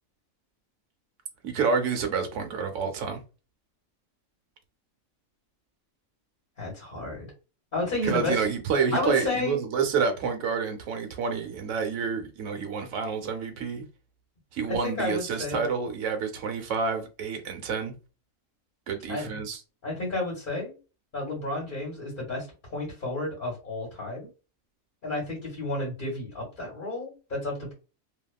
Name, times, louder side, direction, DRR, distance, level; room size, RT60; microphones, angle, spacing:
voice 1, 1.4-3.2 8.0-13.8 14.5-17.9 18.9-19.6, right 5 dB, 65° right, 1.0 m, -28 dB
voice 2, 6.6-7.3 7.7-8.4 8.9-9.6 14.6-15.7 19.1-19.4 19.8-20.7 21.1-24.3 25.0-27.7, left 2 dB, 40° left, 1.4 m, -31 dB
2.8 x 2.4 x 2.3 m
omnidirectional pair, 1.4 m